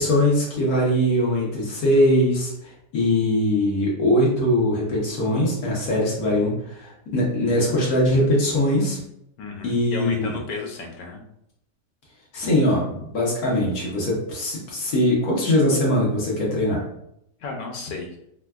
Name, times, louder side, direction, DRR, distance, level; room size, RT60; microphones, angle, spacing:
voice 1, 0.0-9.0 9.6-10.3 12.3-16.8, left 1 dB, 60° left, -4 dB, 1.2 m, -21 dB
voice 2, 9.4-11.2 17.4-18.2, left 4 dB, 80° left, 1 dB, 1.3 m, -33 dB
4.3 x 2.2 x 2.3 m, 0.77 s
omnidirectional pair, 1.9 m